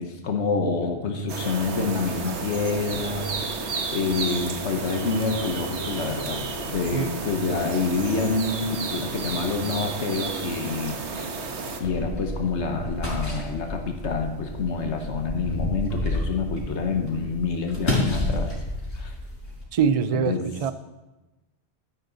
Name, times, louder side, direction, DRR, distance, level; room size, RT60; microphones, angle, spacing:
voice 1, 0.0-11.3 11.8-18.5 18.9-19.1 20.1-20.5, left 4 dB, 85° left, 4 dB, 1.4 m, -27 dB
sound 1, 1.3-11.8, right 4 dB, 85° right, 1.4 m, -32 dB
sound 2, 11.8-19.6, left 1 dB, 65° left, 4.8 m, -30 dB
voice 2, 19.7-20.7, right 7 dB, 45° right, 12 dB, 0.5 m, -23 dB
12.5 x 10.5 x 4.0 m, 1.1 s
omnidirectional pair, 1.1 m